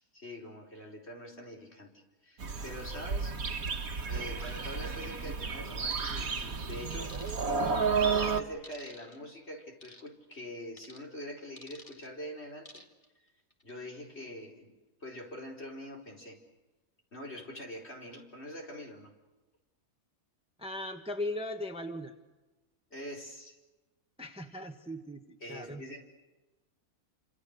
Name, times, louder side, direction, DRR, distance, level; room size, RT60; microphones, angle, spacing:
voice 1, 0.0-1.9 2.2-3.4 4.1-7.1 8.0-12.8 13.6-14.7 15.0-16.4 17.1-19.1 22.9-23.5 25.4-26.0, equal, 50° left, -1 dB, 5.0 m, -44 dB
sound 1, 2.4-8.4, right 5 dB, 80° right, 1.7 m, -32 dB
sound 2, 5.9-6.3 7.1-7.7 8.6-9.2 9.8-10.1 10.8-11.0 11.6-12.1 12.6-13.0 13.5-13.7, left 1 dB, 25° left, 2.1 m, -51 dB
voice 2, 20.6-22.1 24.2-25.8, left 1 dB, 5° right, 5 dB, 1.4 m, -38 dB
28.5 x 26.5 x 6.7 m, 1.1 s
omnidirectional pair, 1.5 m